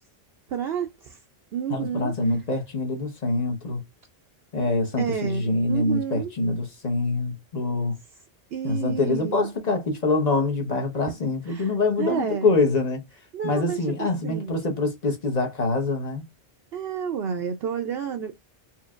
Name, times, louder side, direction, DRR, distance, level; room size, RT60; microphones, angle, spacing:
voice 1, 0.5-1.2 1.5-2.1 5.0-6.3 8.5-9.5 11.5-12.5 13.3-14.6 16.7-18.4, right 8 dB, 65° right, 0.7 m, -30 dB
voice 2, 1.7-3.8 4.5-8.0 8.6-13.0 13.4-16.2, left 3 dB, 40° left, 1.0 m, -25 dB
4.4 x 2.7 x 2.4 m
omnidirectional pair, 1.2 m